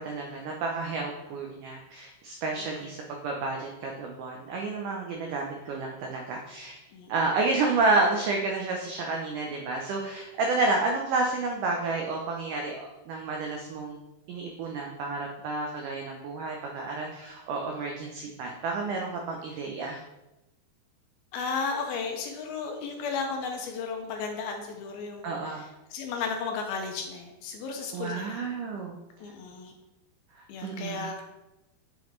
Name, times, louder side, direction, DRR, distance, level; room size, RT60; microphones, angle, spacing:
voice 1, 0.0-6.8 7.1-14.0 14.3-20.0 25.2-25.6 27.9-29.0 30.6-31.0, right 3 dB, 85° right, 1 dB, 1.8 m, -30 dB
voice 2, 21.3-28.4 29.2-29.7 30.5-31.2, left 5 dB, 80° left, 3 dB, 2.5 m, -34 dB
7.4 x 5.2 x 3.1 m, 0.99 s
omnidirectional pair, 4.5 m